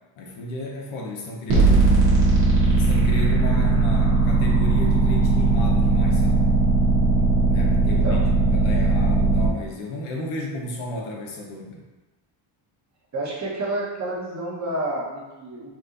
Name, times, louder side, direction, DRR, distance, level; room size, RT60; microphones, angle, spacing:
voice 1, 0.2-2.1 2.7-6.5 7.2-8.2 8.5-11.9, left 1 dB, 80° left, 0 dB, 0.9 m, -33 dB
sound 1, 1.5-9.5, right 3 dB, 80° right, 1.3 m, -18 dB
voice 2, 7.9-8.3 13.1-15.7, right 1 dB, 35° right, -4 dB, 1.1 m, -29 dB
4.3 x 2.6 x 2.5 m, 1.1 s
cardioid pair, 95°, 49 cm